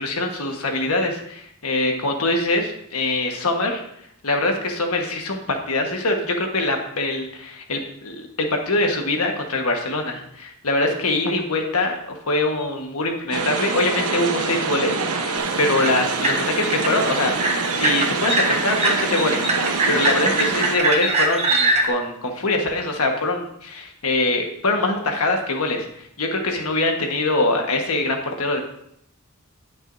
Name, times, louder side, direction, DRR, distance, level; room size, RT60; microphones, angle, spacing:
voice 1, 0.0-3.8 4.2-28.6, left 2 dB, 75° left, 2 dB, 1.4 m, -23 dB
sound 1, 13.3-20.8, right 4 dB, 80° right, 1.1 m, -25 dB
sound 2, 15.4-21.9, right 2 dB, 30° right, 1.2 m, -23 dB
18.5 x 6.2 x 2.7 m, 0.73 s
head